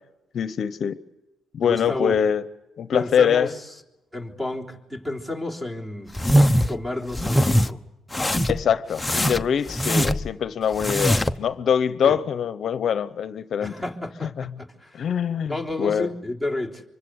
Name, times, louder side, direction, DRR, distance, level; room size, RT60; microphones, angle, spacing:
voice 1, 0.3-1.0 1.5-2.4 2.8-3.5 8.5-13.7 14.4-14.5 14.9-16.1, left 8 dB, 60° left, 0.9 m, -23 dB
voice 2, 1.6-2.2 2.9-3.7 4.1-6.2 6.7-7.8 12.0-12.2 13.6-15.0 15.5-16.8, left 2 dB, 10° right, 3.6 m, -31 dB
sound 1, 6.1-6.7 7.1-7.7 8.1-8.6 9.0-10.3 10.7-11.4, equal, 10° left, 1.0 m, -21 dB
25.0 x 24.5 x 8.2 m
cardioid pair, 90°, 0 cm